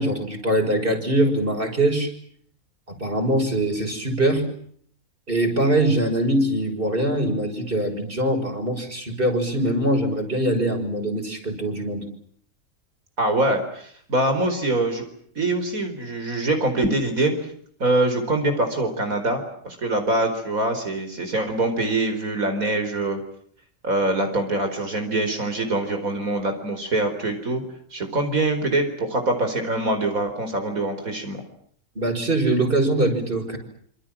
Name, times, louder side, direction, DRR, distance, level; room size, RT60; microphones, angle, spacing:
voice 1, 0.0-2.1 2.9-4.4 5.3-12.1 31.9-33.6, right 1 dB, 40° right, 3 dB, 6.7 m, -22 dB
voice 2, 13.2-15.0 15.4-17.3 17.8-23.2 23.8-27.6 27.9-31.4, right 2 dB, 80° right, 6 dB, 4.9 m, -24 dB
27.0 x 27.0 x 7.5 m, 0.63 s
omnidirectional pair, 1.5 m